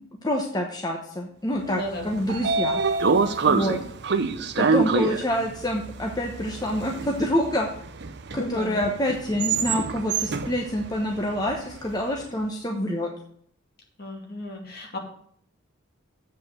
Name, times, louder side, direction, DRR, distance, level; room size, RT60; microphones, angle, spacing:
voice 1, 0.2-2.8 3.5-3.8 4.4-7.7 8.3-13.1, left 1 dB, 20° left, 1 dB, 1.0 m, -27 dB
voice 2, 1.6-2.1 3.4-3.8 8.4-8.9 14.0-15.0, left 1 dB, 50° left, 0 dB, 2.4 m, -34 dB
Train / Sliding door, 1.9-12.0, right 4 dB, 60° right, 0.7 m, -27 dB
8.0 x 5.5 x 7.6 m, 0.62 s
head